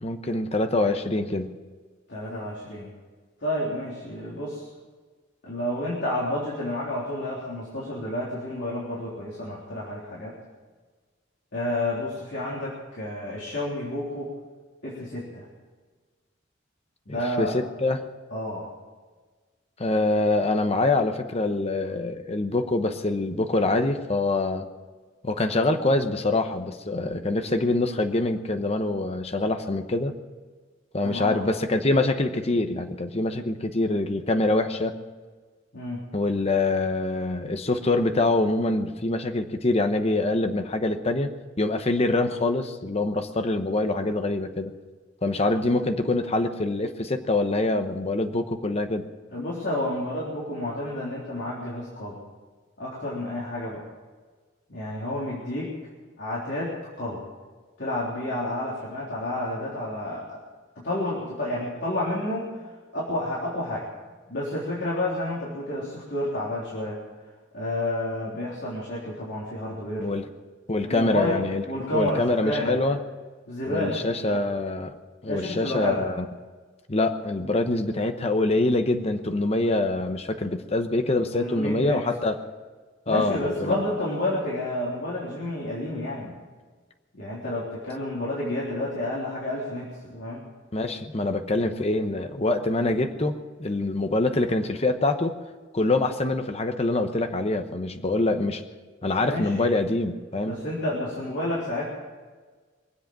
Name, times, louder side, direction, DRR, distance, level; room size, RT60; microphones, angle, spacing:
voice 1, 0.0-1.6 17.1-18.0 19.8-24.7 25.2-30.1 30.9-34.9 36.1-41.3 41.6-44.7 45.2-49.1 70.0-70.3 70.7-71.6 71.9-73.0 73.7-74.9 75.2-76.2 76.9-82.4 83.1-83.8 90.7-95.4 95.7-98.6 99.0-100.6, left 2 dB, 35° left, 7 dB, 1.0 m, -25 dB
voice 2, 2.1-2.9 3.4-4.7 5.4-10.4 11.5-14.3 14.8-15.5 17.1-17.6 18.3-18.7 31.0-31.4 35.7-36.0 49.3-52.2 52.8-53.8 54.7-55.8 56.2-57.2 57.8-60.4 60.8-62.5 62.9-63.9 64.3-67.0 67.5-70.1 70.8-71.4 71.7-72.8 73.5-74.5 75.3-76.0 81.3-82.0 83.1-86.4 87.2-90.4 99.3-99.7 100.4-101.9, left 1 dB, 65° left, -6 dB, 3.5 m, -30 dB
23.5 x 7.9 x 7.6 m, 1.4 s
head